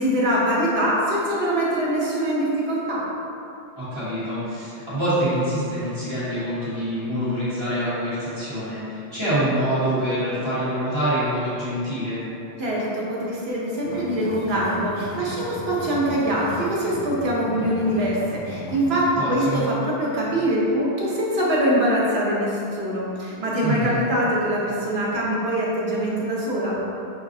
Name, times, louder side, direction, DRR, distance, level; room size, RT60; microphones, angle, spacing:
voice 1, 0.0-3.0 12.6-18.2 18.4-19.0 19.3-26.8, right 1 dB, 70° right, -5 dB, 1.1 m, -23 dB
voice 2, 3.8-12.2 19.1-19.6 23.6-24.0, right 1 dB, 25° right, -14 dB, 1.3 m, -25 dB
sound 1, 13.8-19.0, left 2 dB, 65° left, 1.1 m, -36 dB
6.2 x 2.3 x 2.6 m, 2.7 s
omnidirectional pair, 1.1 m